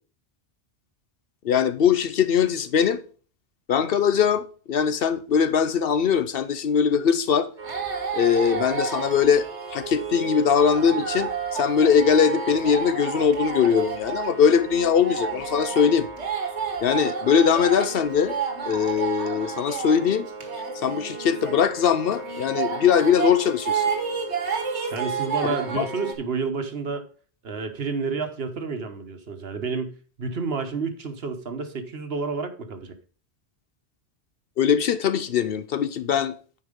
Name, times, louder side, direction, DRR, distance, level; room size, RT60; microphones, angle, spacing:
voice 1, 1.4-3.0 3.7-7.5 8.1-16.1 16.8-18.4 18.7-20.3 20.8-23.8 25.4-25.9 34.6-36.3, left 7 dB, 65° left, 0.8 m, -21 dB
sound 1, 7.6-26.1, right 5 dB, 85° right, 1.7 m, -30 dB
voice 2, 24.9-27.0 27.4-32.9, right 4 dB, 65° right, 1.3 m, -30 dB
9.6 x 4.7 x 5.1 m
omnidirectional pair, 1.1 m